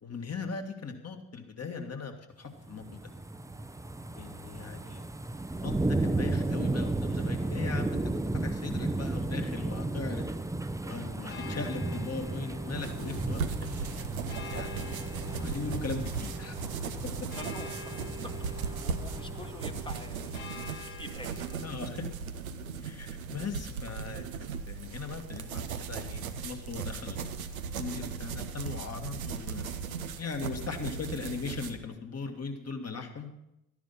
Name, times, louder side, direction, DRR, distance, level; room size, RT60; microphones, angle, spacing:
voice 1, 0.0-3.0 4.1-5.0 5.5-8.0 8.3-10.3 10.8-14.0 14.5-15.0 15.3-16.6 21.6-22.1 22.8-27.5 27.7-29.7 30.2-33.3, left 5 dB, 35° left, 4 dB, 2.0 m, -39 dB
sound 1, 2.6-20.7 21.1-21.2, right 2 dB, 10° right, 0.7 m, -34 dB
sound 2, 11.3-21.7, left 2 dB, 75° left, 1.1 m, -46 dB
sound 3, 12.8-31.8, right 5 dB, 85° right, 0.7 m, -38 dB
voice 2, 17.3-18.1 18.5-21.5, left 1 dB, 10° left, 5 dB, 1.4 m, -47 dB
13.0 x 10.5 x 5.6 m, 0.84 s
figure-of-eight pair, 40°, 41 cm